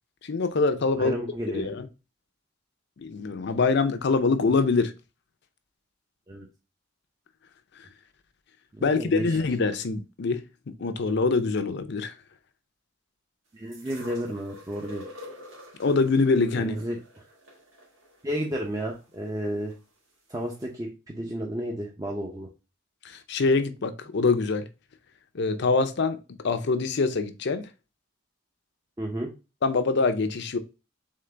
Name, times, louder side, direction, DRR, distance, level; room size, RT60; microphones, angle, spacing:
voice 1, 0.2-1.2 1.5-1.9 3.0-4.9 8.8-10.4 10.7-12.1 15.8-16.8 23.0-24.7 25.3-26.2 26.4-27.7 29.6-30.6, left 4 dB, 60° left, 0.6 m, -24 dB
voice 2, 1.0-1.7 6.3-6.5 8.7-9.4 13.5-15.0 16.6-17.3 18.2-19.7 20.3-22.5 29.0-29.3, right 1 dB, 20° right, 0.6 m, -32 dB
sound 1, 13.7-19.8 20.6-20.7, left 3 dB, 80° right, 1.6 m, -46 dB
3.8 x 3.7 x 3.3 m
head